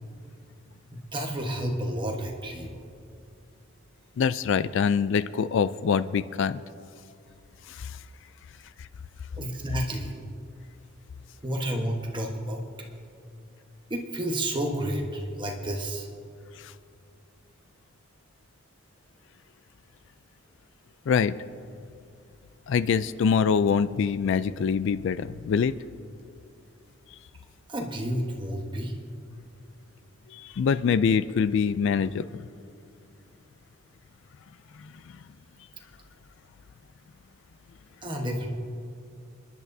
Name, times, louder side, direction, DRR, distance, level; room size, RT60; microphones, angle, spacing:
voice 1, 0.9-2.7 9.4-10.2 11.4-12.6 13.9-16.1 27.7-28.9 38.0-38.5, right 1 dB, 25° right, 1 dB, 1.2 m, -31 dB
voice 2, 4.2-6.6 7.7-8.0 8.8-8.9 16.6-16.7 21.1-21.4 22.7-25.8 30.3-32.3 34.7-35.2, left 6 dB, 65° left, 15 dB, 0.3 m, -25 dB
28.5 x 10.5 x 2.7 m, 2.5 s
head